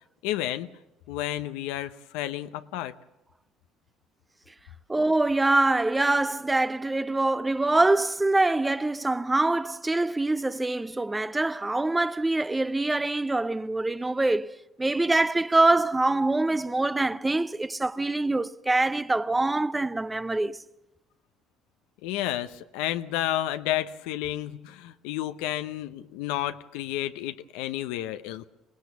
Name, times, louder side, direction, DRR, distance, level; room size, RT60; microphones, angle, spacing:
voice 1, 0.2-0.7 1.1-2.9 22.0-28.4, left 13 dB, 85° left, 0.8 m, -31 dB
voice 2, 4.9-20.6, right 2 dB, 15° right, 0.7 m, -24 dB
24.0 x 18.5 x 7.0 m
supercardioid pair, 90°, 0 cm